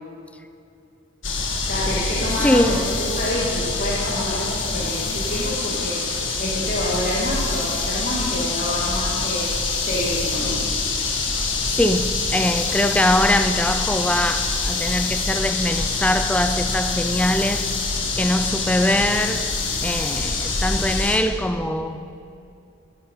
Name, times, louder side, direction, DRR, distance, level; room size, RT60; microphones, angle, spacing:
sound 1, 1.2-21.2, left 3 dB, 70° left, 1.7 m, -25 dB
voice 1, 1.6-9.5 9.8-10.6, left 1 dB, 50° left, 2.4 m, -27 dB
voice 2, 2.4-2.8 11.8-17.7 18.1-19.5 19.8-22.0, left 1 dB, 5° left, 0.4 m, -22 dB
15.5 x 10.0 x 5.6 m
head